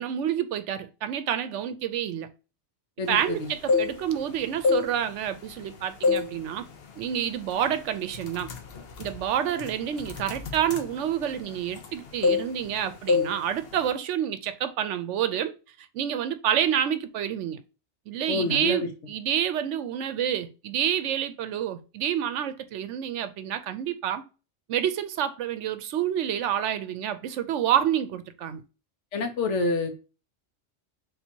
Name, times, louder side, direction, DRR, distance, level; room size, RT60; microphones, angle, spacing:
voice 1, 0.0-2.3 3.1-6.7 7.0-8.5 9.0-15.5 15.8-17.6 18.1-24.2 24.7-28.6, right 10 dB, 75° right, 0.9 m, -28 dB
voice 2, 3.0-3.5 18.3-18.9 29.1-30.0, left 3 dB, 75° left, 1.2 m, -27 dB
sound 1, 3.5-4.2 4.6-5.6 6.0-6.4 6.7-7.0 7.6-7.8 8.1-11.9 12.2-12.8 13.1-13.4 13.6-13.9, left 4 dB, 60° left, 0.9 m, -26 dB
3.6 x 2.8 x 4.3 m
omnidirectional pair, 1.2 m